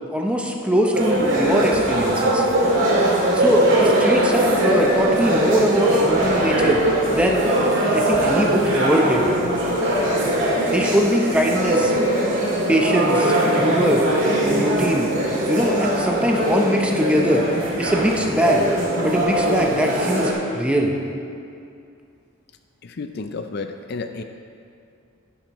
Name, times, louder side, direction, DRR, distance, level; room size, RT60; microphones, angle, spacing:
voice 1, 0.1-2.4 3.3-6.8 7.1-7.5 7.8-9.3 10.6-11.9 12.7-14.0 14.4-15.1 15.5-17.5 17.8-18.7 19.0-20.9, equal, 5° right, 0 dB, 0.7 m, -21 dB
sound 1, 0.9-20.3, right 1 dB, 70° right, 1.9 m, -20 dB
voice 2, 22.8-24.2, left 4 dB, 50° left, 7 dB, 0.4 m, -31 dB
11.0 x 10.0 x 3.1 m, 2.5 s
head